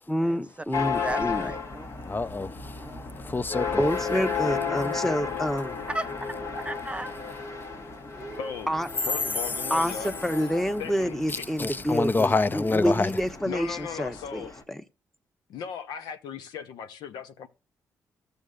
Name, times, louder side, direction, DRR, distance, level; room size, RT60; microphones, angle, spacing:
voice 1, 0.1-1.5 3.8-5.7 8.7-8.9 9.7-14.4 14.7-14.8, equal, 5° left, 1.1 m, -28 dB
sound 1, 0.7-14.6, left 5 dB, 45° left, 1.4 m, -34 dB
voice 2, 1.0-1.9 2.8-3.3 4.6-5.0 5.9-6.3 6.6-7.1 8.1-8.5, right 1 dB, 15° right, 0.3 m, -36 dB
voice 3, 2.1-3.8 11.3-13.1, left 3 dB, 30° left, 0.6 m, -27 dB
voice 4, 8.4-8.7 9.0-10.1 10.8-11.5 13.4-14.5 15.5-17.5, left 7 dB, 85° left, 0.8 m, -37 dB
13.5 x 6.8 x 2.5 m
supercardioid pair, 55°, 7 cm